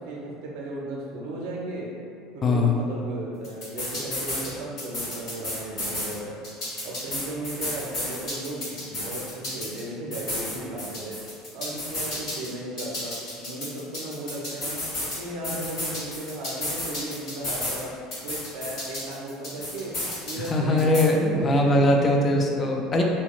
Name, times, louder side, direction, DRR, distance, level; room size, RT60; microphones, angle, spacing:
voice 1, 0.0-1.9 2.3-6.5 6.8-17.9 18.2-22.2, right 1 dB, 65° right, -3 dB, 0.4 m, -35 dB
voice 2, 2.4-2.8 20.5-23.0, left 1 dB, 30° left, 0 dB, 0.4 m, -21 dB
sound 1, 3.4-4.5 4.8-6.1 6.4-9.8 10.1-12.5 12.8-15.2 15.4-17.8 18.1-20.5 20.8-21.0, left 1 dB, 55° left, 1.4 m, -32 dB
2.7 x 2.1 x 2.3 m, 2.3 s
hypercardioid pair, 70°, 0 cm